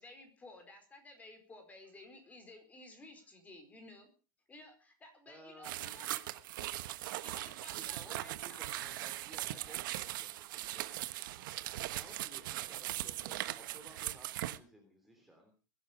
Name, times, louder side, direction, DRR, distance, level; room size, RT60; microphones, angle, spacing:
voice 1, 0.0-4.1 4.5-6.1 7.2-8.6, left 2 dB, 15° left, 7 dB, 4.4 m, -55 dB
voice 2, 5.3-6.0 7.8-15.5, right 1 dB, ahead, 2 dB, 3.2 m, -58 dB
sound 1, 5.6-14.6, right 15 dB, 70° right, 1.2 m, -40 dB
22.0 x 11.5 x 5.1 m, 0.36 s
supercardioid pair, 150°, 11 cm